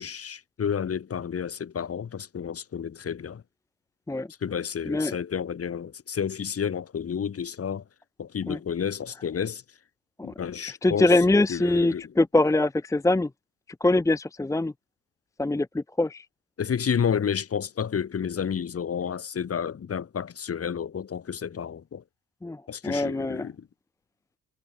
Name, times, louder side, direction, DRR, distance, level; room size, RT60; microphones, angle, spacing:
voice 1, 0.0-3.4 4.4-7.8 8.2-9.6 10.2-11.2 11.5-12.0 16.6-22.0 22.7-23.7, left 7 dB, 50° left, 6.9 m, -30 dB
voice 2, 4.9-5.2 8.5-8.6 10.8-13.3 13.8-14.7 15.4-16.2 22.4-23.5, left 2 dB, 10° left, 0.8 m, -23 dB
cardioid pair, 90°, 30 cm